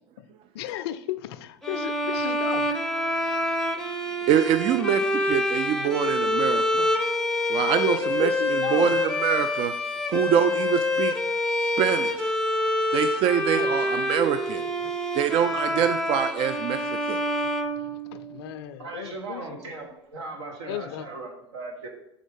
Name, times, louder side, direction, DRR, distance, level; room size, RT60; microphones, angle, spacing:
voice 1, 0.5-2.8 7.9-8.9 13.5-13.8 14.8-14.9 16.8-16.9 17.6-19.4 20.6-21.1, left 12 dB, 65° left, 13 dB, 0.4 m, -35 dB
sound 1, 1.6-18.5, left 1 dB, 5° left, 0.6 m, -26 dB
voice 2, 4.3-6.9 7.5-9.7 10.1-11.1 11.8-12.4 12.9-14.6 15.1-16.8 17.1-17.2, right 9 dB, 40° right, 9 dB, 0.3 m, -25 dB
voice 3, 18.8-21.9, right 3 dB, 75° right, 1 dB, 1.3 m, -38 dB
5.1 x 3.8 x 5.1 m, 0.84 s
figure-of-eight pair, 75°, 14 cm